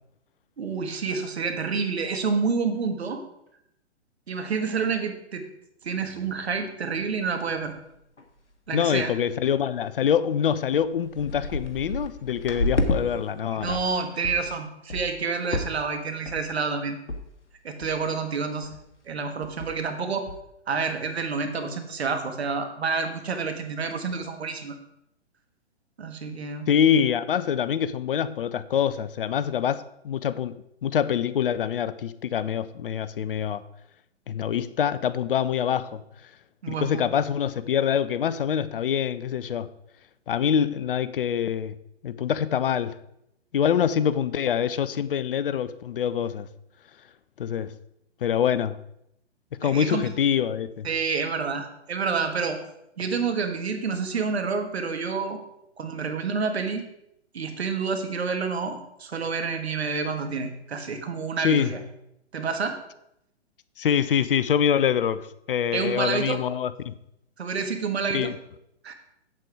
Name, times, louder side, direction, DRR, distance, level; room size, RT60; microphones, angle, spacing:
voice 1, 0.6-3.2 4.3-5.5 5.8-7.7 8.7-9.1 12.8-13.1 13.5-17.0 17.6-18.7 19.1-20.3 20.7-24.8 26.0-26.7 36.6-37.1 49.6-50.1 50.8-52.6 53.0-55.4 55.8-56.9 57.3-61.8 62.3-62.7 65.7-66.4 67.4-68.3 68.8-68.9, right 5 dB, 65° right, 1.5 m, -28 dB
sound 1, 7.0-7.1 7.6-7.7 7.9-8.4 8.7-9.0 9.6-9.7 10.3-10.4 10.7-13.0 13.4-13.9 14.2-14.5 14.9-15.2 15.5-15.9 16.2-16.6 17.1-17.2 17.5-17.6 17.8-18.2 18.6-18.8 19.1-19.2 19.4-19.8 20.3-20.4, left 2 dB, 85° left, 1.3 m, -30 dB
voice 2, 8.7-13.8 26.7-30.6 30.8-33.6 34.3-36.0 36.7-39.7 40.3-41.8 42.0-43.0 43.5-46.5 47.4-47.7 48.2-48.8 49.5-50.9 61.4-61.7 63.8-66.9 68.1-68.3, left 8 dB, 55° left, 0.5 m, -25 dB
7.6 x 7.5 x 4.8 m
figure-of-eight pair, 125°, 34 cm